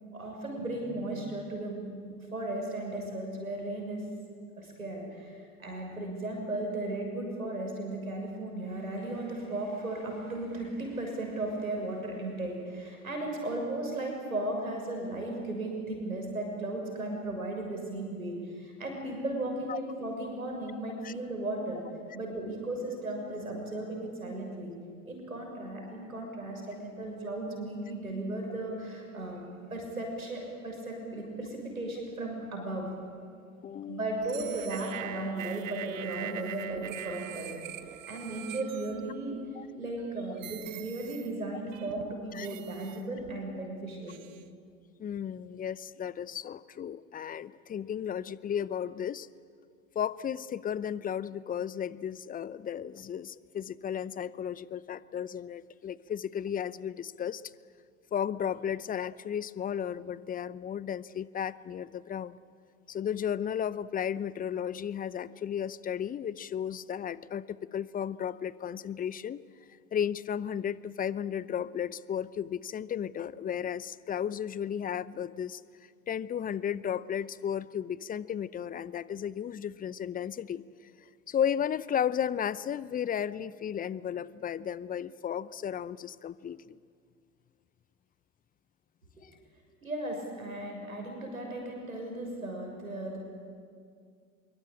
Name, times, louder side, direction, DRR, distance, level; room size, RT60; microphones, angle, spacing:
voice 1, 0.1-1.9 2.3-4.0 4.6-21.8 22.1-24.7 25.0-29.4 29.7-32.8 33.9-37.5 37.8-39.4 39.8-44.2 89.8-93.2, right 2 dB, 90° right, 1 dB, 6.7 m, -36 dB
voice 2, 33.6-34.2 39.6-39.7 42.3-42.5 45.0-49.3 49.9-57.4 58.1-62.4 62.9-69.4 69.9-75.6 76.1-80.6 81.3-86.8, left 9 dB, 20° left, 18 dB, 0.7 m, -34 dB
sound 1, 34.2-39.4 40.0-40.1 40.4-41.3 41.7-43.4 44.1-44.4, right 11 dB, 70° right, 1.3 m, -43 dB
25.5 x 23.5 x 8.7 m, 2.2 s
figure-of-eight pair, 80°, 41 cm